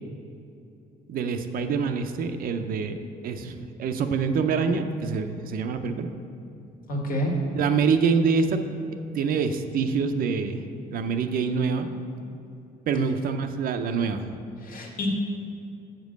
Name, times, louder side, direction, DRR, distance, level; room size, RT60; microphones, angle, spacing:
voice 1, 1.1-3.0 3.2-6.1 7.5-8.6 9.1-10.6 10.9-11.9 12.9-14.3, right 5 dB, 60° right, 8 dB, 0.6 m, -25 dB
voice 2, 6.9-7.3 12.9-13.0 14.6-15.1, left 1 dB, 60° left, 0 dB, 1.7 m, -28 dB
7.3 x 5.2 x 6.4 m, 2.7 s
cardioid pair, 110°, 17 cm